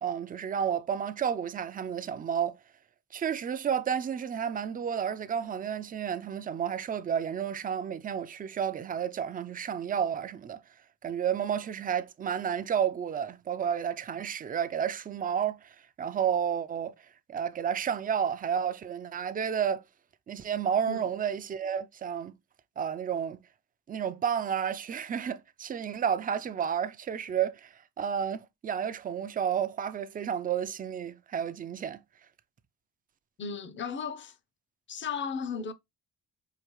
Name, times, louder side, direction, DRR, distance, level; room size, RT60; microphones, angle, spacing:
voice 1, 0.0-2.6 3.1-10.6 11.0-19.8 20.3-22.3 22.8-23.4 23.9-32.0, right 8 dB, 30° right, 0.4 m, -31 dB
voice 2, 33.4-34.3 34.9-35.7, left 6 dB, 40° left, 0.6 m, -35 dB
4.8 x 2.5 x 3.0 m
cardioid pair, 90°, 30 cm